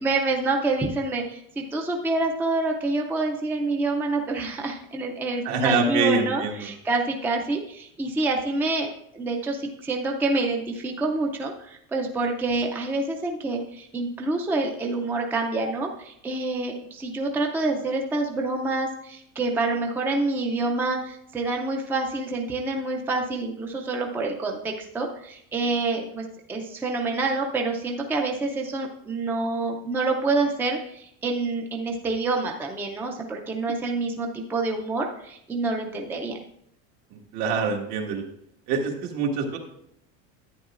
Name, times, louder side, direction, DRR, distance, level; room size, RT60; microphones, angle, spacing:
voice 1, 0.0-8.9 9.1-36.4, right 3 dB, 5° right, 1 dB, 0.4 m, -27 dB
voice 2, 5.5-6.7 37.3-38.2 38.7-39.6, right 4 dB, 75° right, 1 dB, 1.8 m, -25 dB
11.0 x 9.3 x 2.4 m, 0.75 s
cardioid pair, 170°, 33 cm